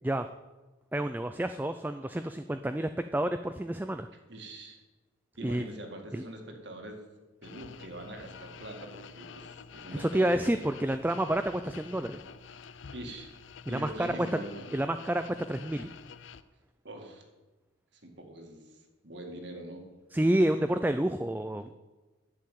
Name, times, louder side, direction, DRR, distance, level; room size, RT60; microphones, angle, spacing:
voice 1, 0.9-4.1 5.4-5.6 6.1-6.2 10.0-12.2 13.7-14.1 14.7-15.9 20.1-21.7, right 1 dB, 10° right, 9 dB, 0.3 m, -29 dB
voice 2, 4.3-4.8 5.4-7.0 7.4-10.6 12.9-13.4 13.7-14.7 16.8-17.2 18.0-18.7 19.0-19.9, right 1 dB, 60° right, 3 dB, 2.1 m, -43 dB
switching through static channels, 7.4-16.4, left 5 dB, 70° left, 0.5 m, -48 dB
10.5 x 6.8 x 9.2 m, 1.2 s
head